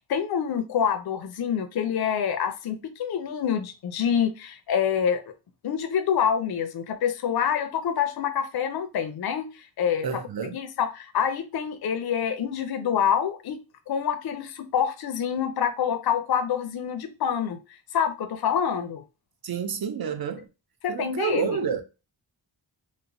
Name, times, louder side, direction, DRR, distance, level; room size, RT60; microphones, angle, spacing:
voice 1, 0.0-5.3 5.6-10.2 10.5-13.6 13.9-17.6 17.9-19.0 20.8-21.5, left 8 dB, 55° left, 0.5 m, -26 dB
voice 2, 10.0-10.6 19.4-20.5 20.9-21.8, right 6 dB, 55° right, 0.5 m, -29 dB
3.0 x 2.0 x 2.5 m
wide cardioid pair, 60°, 46 cm